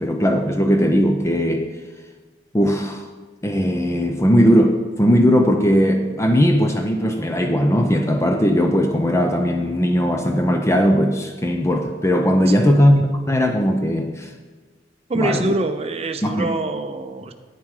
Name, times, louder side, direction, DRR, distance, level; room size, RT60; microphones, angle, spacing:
voice 1, 0.0-1.7 2.5-3.1 3.4-14.3 15.1-15.5 16.2-16.5, equal, 15° left, 4 dB, 0.5 m, -18 dB
voice 2, 12.5-12.8 15.1-17.3, right 2 dB, 35° right, 7 dB, 0.6 m, -25 dB
9.0 x 7.1 x 4.8 m, 1.4 s
head